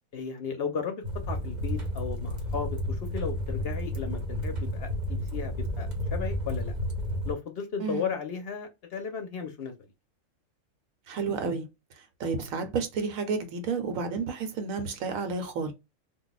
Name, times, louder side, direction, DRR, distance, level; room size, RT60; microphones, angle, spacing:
voice 1, 0.1-6.8 7.2-9.9, left 6 dB, 60° left, 0.7 m, -35 dB
sound 1, 1.0-7.3, equal, 40° right, 0.7 m, -31 dB
voice 2, 7.8-8.1 11.1-11.7 12.2-15.7, right 4 dB, 85° right, 1.1 m, -31 dB
2.4 x 2.2 x 3.9 m
omnidirectional pair, 1.4 m